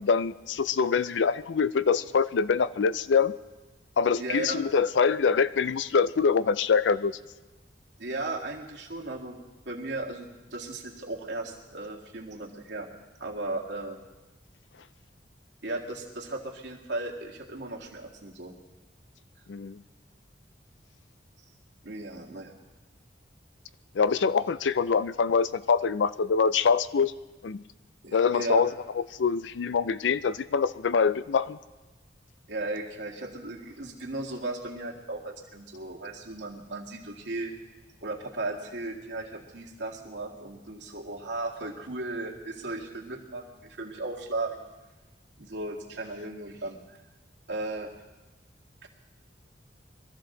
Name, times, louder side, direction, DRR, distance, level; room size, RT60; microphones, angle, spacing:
voice 1, 0.0-3.4 4.0-7.2 19.5-19.8 23.9-27.1 27.4-27.6 28.1-28.7 29.0-31.6, left 5 dB, 90° left, 16 dB, 0.5 m, -24 dB
voice 2, 4.2-4.6 8.0-9.4 9.7-12.9 13.2-14.0 15.6-18.5 21.8-22.6 28.0-28.6 32.5-37.5 38.0-44.7 45.4-47.0 47.5-47.9 48.8-48.9, right 2 dB, 80° right, -1 dB, 2.0 m, -36 dB
23.0 x 14.0 x 3.9 m, 1.2 s
head